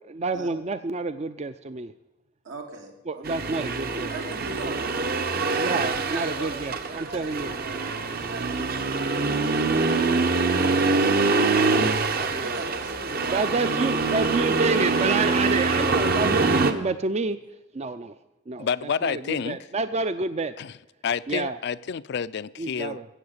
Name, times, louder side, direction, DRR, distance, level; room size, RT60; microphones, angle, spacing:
voice 1, 0.1-1.9 3.1-4.1 5.6-7.5 12.1-12.6 13.3-17.4 17.7-18.1 18.5-20.5 21.3-21.6 22.6-23.0, right 3 dB, 35° right, 11 dB, 0.5 m, -28 dB
voice 2, 2.4-3.3 3.8-4.8 5.5-9.1 11.8-14.0, right 2 dB, 85° right, 2 dB, 2.5 m, -40 dB
Accelerating revving vroom, 3.2-16.7, right 3 dB, 55° right, 1.0 m, -24 dB
voice 3, 18.6-19.6 20.6-23.0, left 6 dB, 60° left, 16 dB, 0.4 m, -29 dB
15.5 x 7.7 x 8.1 m, 0.95 s
head